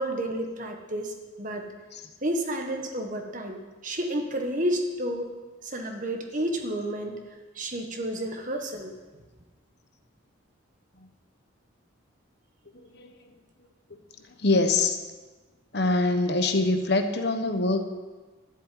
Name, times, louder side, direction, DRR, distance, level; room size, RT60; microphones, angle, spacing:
voice 1, 0.0-1.7 2.2-5.4 5.6-7.2 7.5-8.9, right 1 dB, 40° right, 3 dB, 1.5 m, -31 dB
voice 2, 12.7-13.2 14.4-15.0 15.7-17.9, left 2 dB, 50° left, 7 dB, 1.1 m, -24 dB
12.0 x 7.8 x 9.4 m, 1.3 s
head